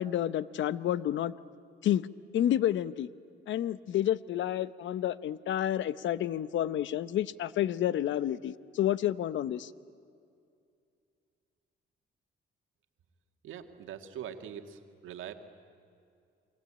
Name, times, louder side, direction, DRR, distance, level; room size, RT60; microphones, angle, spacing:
voice 1, 0.0-1.3 1.8-2.1 2.3-3.1 3.5-9.7, left 11 dB, 70° left, 16 dB, 0.8 m, -30 dB
voice 2, 13.4-15.3, right 9 dB, 80° right, 6 dB, 1.9 m, -43 dB
28.0 x 23.0 x 8.8 m, 2.4 s
cardioid pair, 90°, 20 cm